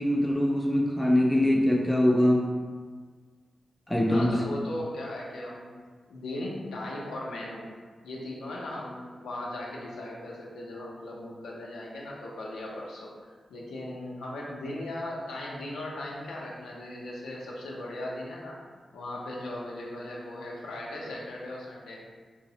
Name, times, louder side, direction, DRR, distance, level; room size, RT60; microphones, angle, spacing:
voice 1, 0.0-2.5 3.9-4.4, left 1 dB, 10° left, -1 dB, 0.4 m, -23 dB
voice 2, 4.1-5.7 6.1-7.7 8.0-18.6 18.9-22.0, left 1 dB, 85° left, -4 dB, 0.5 m, -38 dB
3.8 x 2.0 x 2.7 m, 1.5 s
supercardioid pair, 40°, 0 cm